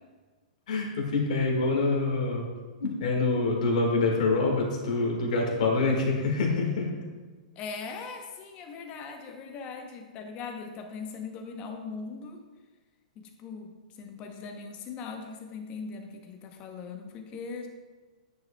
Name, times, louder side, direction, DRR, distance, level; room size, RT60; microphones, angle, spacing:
voice 1, 0.7-2.5 2.8-6.9, left 3 dB, 60° left, 0 dB, 1.6 m, -26 dB
voice 2, 7.6-12.4 13.2-17.7, left 5 dB, 25° left, 5 dB, 0.7 m, -40 dB
9.2 x 5.0 x 2.2 m, 1.3 s
hypercardioid pair, 150°, 4 cm